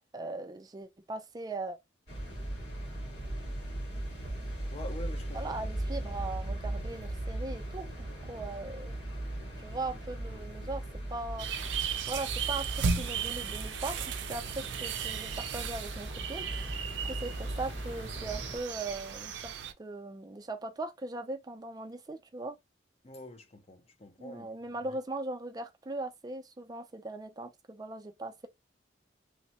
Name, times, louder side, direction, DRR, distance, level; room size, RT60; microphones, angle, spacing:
voice 1, 0.1-1.8 5.3-9.0 9.6-10.8 11.1-11.5 12.1-16.7 17.0-22.6 24.2-28.5, right 2 dB, 20° right, 0.4 m, -39 dB
sound 1, 2.1-18.6, right 1 dB, 65° left, 2.0 m, -38 dB
voice 2, 4.7-5.5 23.0-24.5, left 1 dB, 35° left, 0.5 m, -45 dB
sound 2, 11.4-19.7, right 6 dB, 80° right, 0.4 m, -36 dB
3.1 x 2.0 x 2.8 m
head